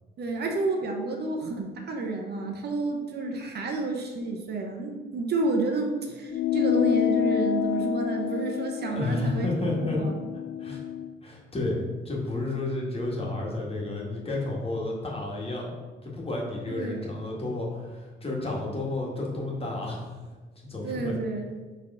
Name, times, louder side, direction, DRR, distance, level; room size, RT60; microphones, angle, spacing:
voice 1, 0.2-10.2 16.7-17.1 20.8-21.5, right 3 dB, 55° right, 3 dB, 0.9 m, -30 dB
sound 1, 6.3-11.1, left 9 dB, 60° left, 0.4 m, -28 dB
voice 2, 8.8-10.0 10.6-10.8 11.2-15.7 16.0-20.1 20.7-21.2, left 2 dB, 30° left, -2 dB, 1.7 m, -31 dB
4.8 x 3.6 x 5.5 m, 1.3 s
cardioid pair, 90°, 20 cm